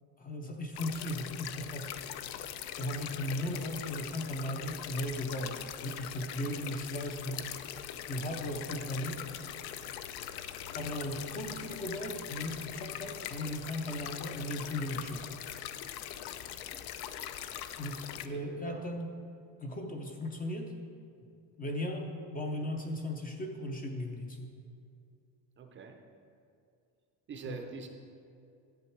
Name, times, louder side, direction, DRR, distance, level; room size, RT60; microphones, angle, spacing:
voice 1, 0.2-1.9 2.8-7.5 8.1-9.2 10.7-15.3 17.8-19.1 19.6-20.7 21.6-24.5 27.4-27.6, left 1 dB, 20° left, 3 dB, 0.5 m, -37 dB
sound 1, 0.7-18.3, left 10 dB, 65° left, 0.6 m, -42 dB
voice 2, 18.3-18.9 25.6-26.0 27.3-27.9, right 5 dB, 30° right, 4 dB, 0.5 m, -45 dB
11.0 x 7.8 x 4.5 m, 2.5 s
cardioid pair, 165°, 43 cm